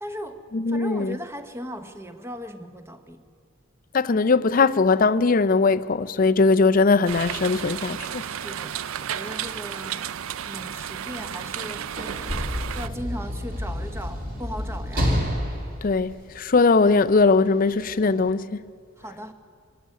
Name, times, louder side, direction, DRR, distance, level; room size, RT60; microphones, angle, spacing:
voice 1, 0.0-3.3 8.3-10.1 10.4-12.2 12.7-15.1 19.0-19.3, equal, 10° right, 1.0 m, -38 dB
voice 2, 0.5-1.1 3.9-8.2 15.8-18.5, left 4 dB, 40° left, 0.5 m, -20 dB
sound 1, 7.1-12.9, right 9 dB, 70° right, 0.5 m, -33 dB
Sliding door / Slam, 11.5-16.9 17.8-17.9, equal, 40° right, 3.1 m, -29 dB
24.0 x 12.5 x 9.5 m
head